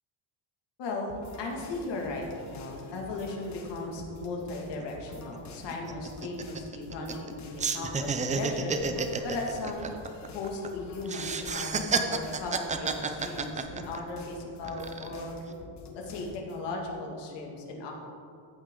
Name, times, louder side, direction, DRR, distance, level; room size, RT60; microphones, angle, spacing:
voice 1, 0.8-8.8 9.2-9.9 10.3-15.3 15.9-17.9, left 2 dB, 60° left, 0 dB, 2.1 m, -37 dB
sound 1, 1.1-16.6, left 3 dB, 35° left, 1.2 m, -48 dB
sound 2, 4.8-4.9 5.2-5.4 5.7-7.3 7.6-10.7 11.1-14.2 14.6-15.2, right 5 dB, 15° right, 0.3 m, -31 dB
14.5 x 8.1 x 3.8 m, 2.6 s
cardioid pair, 165°, 48 cm